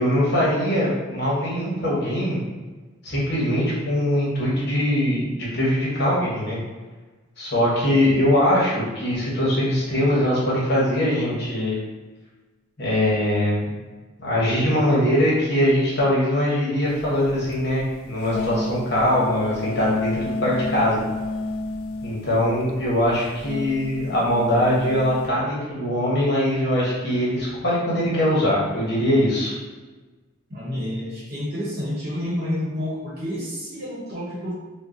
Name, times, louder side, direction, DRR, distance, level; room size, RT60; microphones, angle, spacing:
voice 1, 0.0-2.4 3.0-6.6 7.4-11.8 12.8-13.6 14.2-21.0 22.0-29.5, left 1 dB, 50° left, -6 dB, 1.0 m, -22 dB
sound 1, 16.9-25.3, left 2 dB, 80° left, 0.3 m, -31 dB
voice 2, 30.5-34.6, left 1 dB, 50° right, -6 dB, 0.9 m, -29 dB
2.7 x 2.1 x 3.7 m, 1.3 s
head